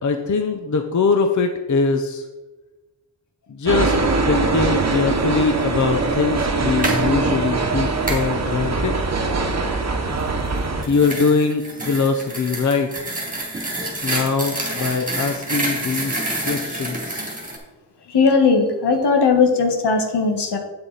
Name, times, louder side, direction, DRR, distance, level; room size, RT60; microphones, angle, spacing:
voice 1, 0.0-2.2 3.5-3.9 4.2-9.0 10.8-13.0 14.0-17.3, left 4 dB, 45° left, 6 dB, 0.7 m, -22 dB
sound 1, 3.7-10.8, right 3 dB, 40° right, 1.1 m, -22 dB
sound 2, 6.6-7.0 8.1-8.3 10.4-17.6, right 1 dB, 20° right, 2.3 m, -28 dB
voice 2, 18.1-20.6, left 4 dB, 75° left, 4 dB, 1.5 m, -18 dB
8.8 x 7.6 x 4.0 m, 1.1 s
wide cardioid pair, 120°, 41 cm